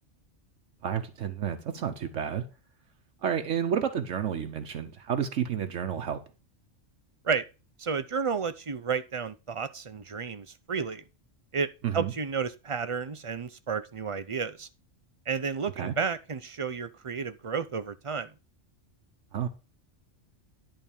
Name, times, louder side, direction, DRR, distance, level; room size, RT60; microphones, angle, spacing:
voice 1, 0.8-2.4 3.2-6.2 11.8-12.1 15.8-15.9 19.3-19.5, right 8 dB, 75° right, 1.2 m, -30 dB
voice 2, 7.8-11.0 11.5-14.7 15.3-18.3, right 5 dB, 40° right, 0.4 m, -32 dB
10.5 x 3.9 x 7.2 m
omnidirectional pair, 1.3 m